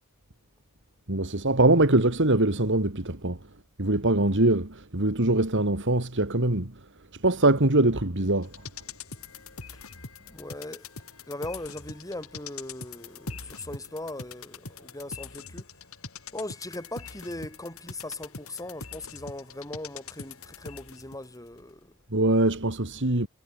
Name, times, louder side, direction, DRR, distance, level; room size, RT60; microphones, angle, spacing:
voice 1, 1.1-3.4 3.8-6.7 7.2-8.5 22.1-23.3, right 2 dB, 55° right, 2.7 m, -23 dB
sound 1, 8.4-21.3 21.6-21.7, left 4 dB, 70° left, 4.2 m, -43 dB
voice 2, 10.2-10.9 11.3-15.6 16.3-21.9, left 1 dB, 15° left, 6.1 m, -39 dB
head